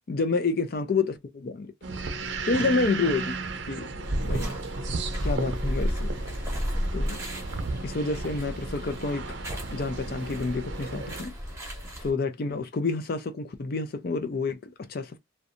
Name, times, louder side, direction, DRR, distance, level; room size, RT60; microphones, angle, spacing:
voice 1, 0.1-2.0 2.5-3.3 3.7-4.5 5.2-6.4 6.9-7.2 7.8-9.3 9.7-11.3 12.0-15.2, left 3 dB, 50° left, 0.4 m, -29 dB
sound 1, 1.8-11.2, right 3 dB, 65° right, 0.5 m, -35 dB
sound 2, 4.0-12.1, equal, 15° right, 0.8 m, -33 dB
2.6 x 2.2 x 2.5 m
head